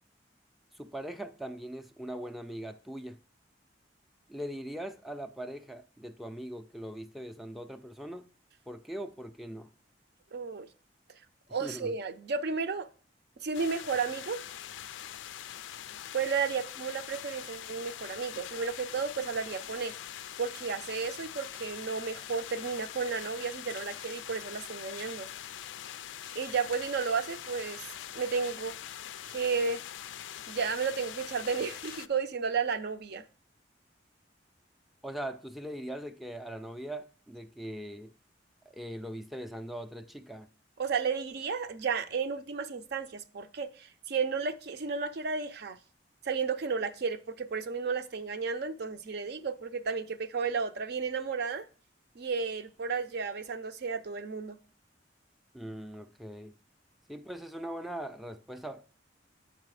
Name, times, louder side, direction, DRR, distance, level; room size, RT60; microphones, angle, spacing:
voice 1, 0.7-3.2 4.3-8.3 8.7-9.7 11.6-11.9 35.0-38.1 38.7-40.5 55.5-56.5 57.1-59.0, right 1 dB, ahead, 0.4 m, -41 dB
voice 2, 10.3-10.7 11.5-12.9 13.4-14.4 16.1-19.9 20.4-25.3 26.3-27.9 28.1-28.7 29.2-29.8 30.5-33.2 40.8-45.8 46.2-51.7 52.2-54.6, right 5 dB, 60° right, 0.6 m, -33 dB
sound 1, 13.5-32.1, left 10 dB, 90° left, 0.4 m, -43 dB
6.8 x 4.8 x 4.8 m
head